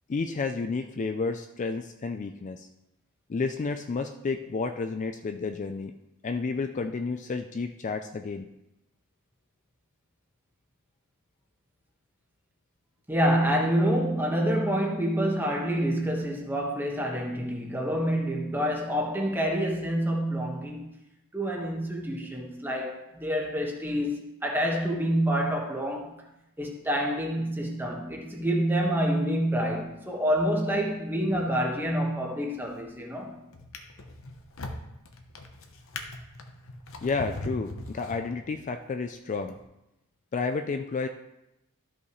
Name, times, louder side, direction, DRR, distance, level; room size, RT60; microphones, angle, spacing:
voice 1, 0.1-2.7 3.3-5.9 6.2-8.5 37.0-39.6 40.3-41.1, left 4 dB, 35° left, 0.3 m, -31 dB
voice 2, 13.1-20.9 21.3-26.1 26.6-33.4, equal, 10° right, 1.3 m, -27 dB
Drawer open or close, 32.6-33.0 33.5-38.7 39.4-39.6, left 2 dB, 65° left, 0.9 m, -40 dB
13.0 x 5.8 x 3.1 m
head